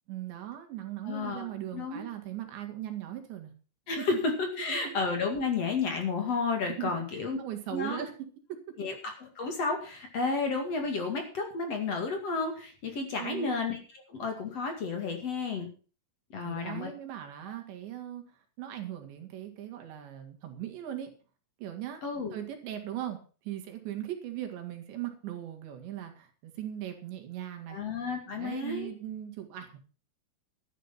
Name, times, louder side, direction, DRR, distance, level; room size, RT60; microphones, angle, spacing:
voice 1, 0.1-3.5 4.0-4.1 4.6-5.0 6.8-8.1 8.5-8.6 13.2-13.6 16.4-18.2 18.6-21.1 21.6-22.0 22.3-23.2 23.4-27.8 28.3-29.8, right 12 dB, 80° right, 5 dB, 4.3 m, -39 dB
voice 2, 1.0-2.0 3.9-7.4 7.7-8.0 8.8-13.8 14.1-15.7 16.3-16.9 22.0-22.4 27.7-28.9, left 4 dB, 45° left, 3 dB, 2.7 m, -32 dB
12.5 x 10.0 x 5.8 m, 0.38 s
omnidirectional pair, 5.1 m